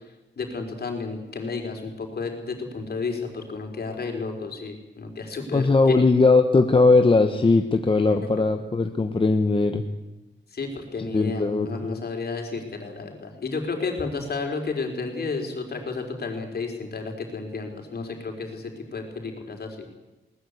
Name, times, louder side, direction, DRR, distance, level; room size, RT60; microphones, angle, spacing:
voice 1, 0.4-6.0 10.5-19.9, left 4 dB, 55° left, 3 dB, 4.2 m, -32 dB
voice 2, 5.5-9.8 11.1-12.0, left 3 dB, 25° left, 6 dB, 1.1 m, -19 dB
21.5 x 19.5 x 8.1 m, 1.0 s
wide cardioid pair, 150°, 20 cm